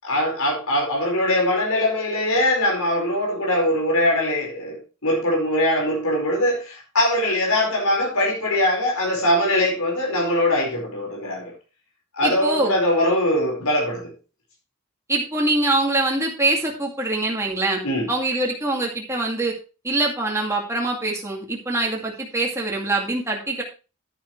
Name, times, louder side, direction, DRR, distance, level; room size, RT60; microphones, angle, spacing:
voice 1, 0.0-11.5 12.1-14.1 17.8-18.1, left 1 dB, 90° left, 4.9 m, -22 dB
voice 2, 12.2-12.7 15.1-17.8 18.1-19.5 19.8-23.6, right 2 dB, 15° right, 2.4 m, -24 dB
10.5 x 10.0 x 3.2 m
head